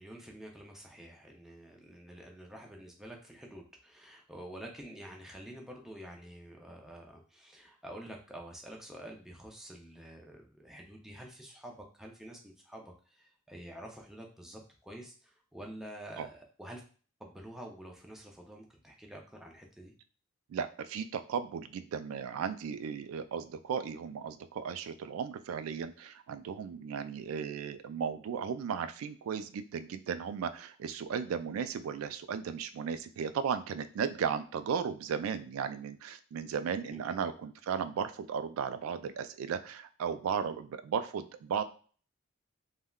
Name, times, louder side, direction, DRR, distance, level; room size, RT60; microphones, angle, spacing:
voice 1, 0.0-16.8 17.2-19.9 37.0-37.1, right 1 dB, ahead, 0 dB, 0.4 m, -48 dB
voice 2, 20.5-41.6, right 7 dB, 80° right, 10 dB, 0.3 m, -35 dB
3.5 x 2.1 x 2.2 m, 0.41 s
head